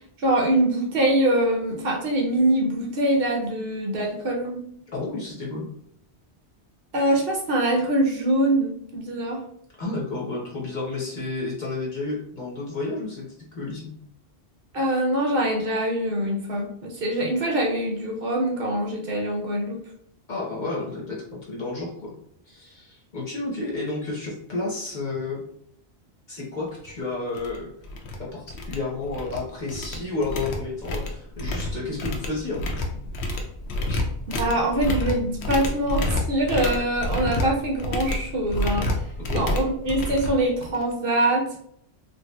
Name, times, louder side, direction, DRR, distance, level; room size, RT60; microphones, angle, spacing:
voice 1, 0.2-4.6 6.9-9.4 14.7-19.8 34.4-38.9 39.3-41.4, right 1 dB, 60° right, 0 dB, 0.8 m, -24 dB
voice 2, 4.9-5.7 9.8-13.3 13.5-13.9 20.3-22.1 22.5-25.4 26.3-27.7 28.2-32.7 33.9-34.0 39.2-39.4, left 3 dB, 45° left, -4 dB, 0.9 m, -31 dB
sound 1, 26.8-26.9 27.3-27.6 27.8-28.2 28.5-29.4 29.7-40.9, left 1 dB, 75° left, 0.8 m, -29 dB
3.3 x 2.8 x 2.2 m, 0.70 s
omnidirectional pair, 1.1 m